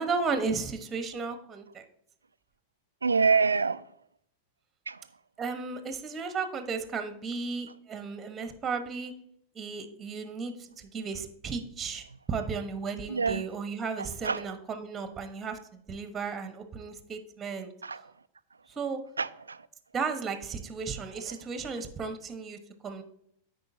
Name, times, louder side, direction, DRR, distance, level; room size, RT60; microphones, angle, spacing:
voice 1, 0.0-1.8 5.4-9.1 9.5-17.7 18.0-18.1 18.7-19.0 19.9-23.0, right 5 dB, 20° right, 1.1 m, -34 dB
voice 2, 3.0-3.8 4.9-5.0 13.1-13.4 14.2-14.4 17.8-18.0 19.2-19.6, right 5 dB, 75° right, 0.3 m, -25 dB
13.0 x 5.3 x 2.7 m
figure-of-eight pair, 90°, 0 cm